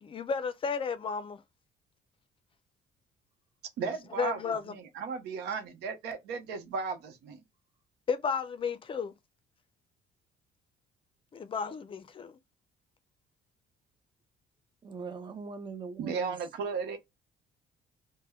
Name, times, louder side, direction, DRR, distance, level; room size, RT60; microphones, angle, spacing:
voice 1, 0.0-1.4 3.9-4.7 8.1-9.1 11.3-12.4, left 5 dB, 30° left, 0.5 m, -33 dB
voice 2, 3.8-7.4 16.0-17.0, right 5 dB, 80° right, 0.8 m, -35 dB
voice 3, 14.8-16.3, right 5 dB, 30° right, 0.6 m, -41 dB
2.1 x 2.1 x 3.4 m
cardioid pair, 110°, 17 cm